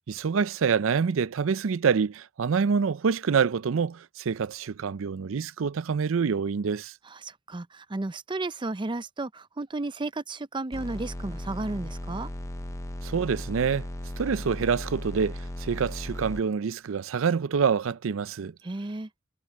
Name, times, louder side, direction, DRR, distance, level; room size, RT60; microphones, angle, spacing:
voice 1, 0.1-6.9 13.0-13.9 14.2-18.5, right 6 dB, 90° right, 0.5 m, -26 dB
voice 2, 7.0-12.3 18.6-19.1, right 2 dB, 25° right, 0.6 m, -33 dB
sound 1, 10.7-16.4, left 1 dB, 15° left, 0.7 m, -36 dB
head